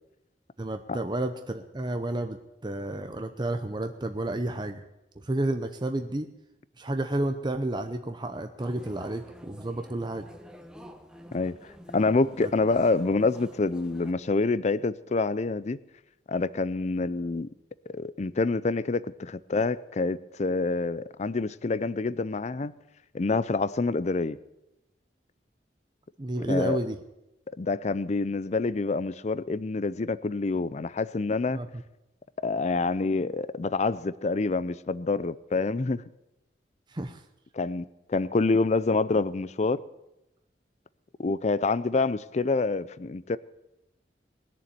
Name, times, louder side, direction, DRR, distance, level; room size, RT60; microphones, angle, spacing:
voice 1, 0.6-4.8 5.2-6.3 6.8-10.3 12.4-12.5 26.2-27.0 31.5-31.8 36.9-37.2, right 1 dB, 25° right, 0.7 m, -31 dB
sound 1, 8.6-14.1, equal, 5° right, 1.1 m, -48 dB
voice 2, 11.9-15.8 16.3-17.5 17.9-22.7 23.1-24.4 26.5-26.8 27.6-31.6 32.4-36.0 37.5-39.8 41.2-43.4, left 3 dB, 40° left, 0.5 m, -27 dB
20.0 x 7.0 x 9.4 m
head